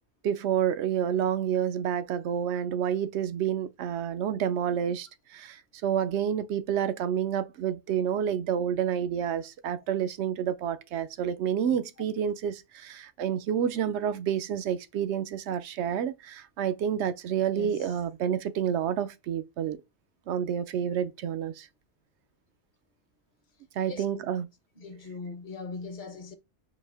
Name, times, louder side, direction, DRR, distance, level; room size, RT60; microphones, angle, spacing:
voice 1, 0.2-19.8 20.3-21.7 23.8-24.5, right 9 dB, 85° right, 0.9 m, -29 dB
voice 2, 17.5-17.9 23.9-24.2 24.8-26.4, left 4 dB, 55° left, 0.7 m, -40 dB
4.2 x 2.6 x 3.3 m
omnidirectional pair, 1.1 m